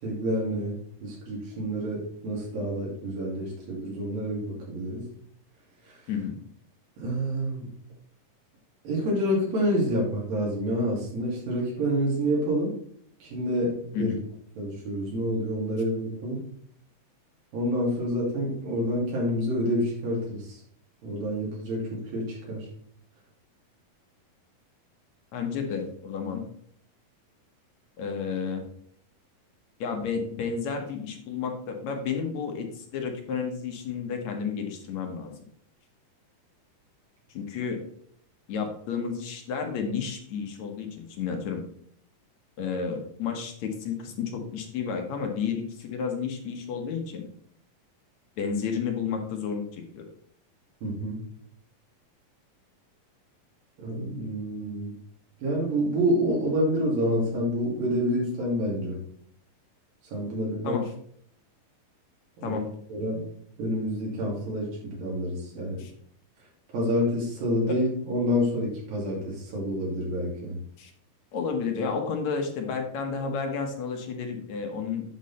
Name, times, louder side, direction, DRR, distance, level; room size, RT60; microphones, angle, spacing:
voice 1, 0.0-5.0 5.9-6.0 7.0-7.7 8.8-12.7 13.2-14.1 14.6-16.4 17.5-20.6 21.0-22.7 50.8-51.2 53.8-54.9 55.4-59.0 60.1-60.8 62.4-62.6 62.9-63.3 63.6-65.8 66.7-70.6, equal, 85° right, -4 dB, 4.4 m, -28 dB
voice 2, 25.3-26.4 28.0-28.6 29.8-35.3 37.3-37.8 38.5-41.6 42.6-47.3 48.4-50.0 60.6-60.9 62.4-62.6 65.8-65.9 67.7-67.8 70.8-70.9 71.3-75.0, left 6 dB, 65° left, 3 dB, 2.2 m, -31 dB
8.5 x 6.1 x 4.2 m, 0.64 s
omnidirectional pair, 4.0 m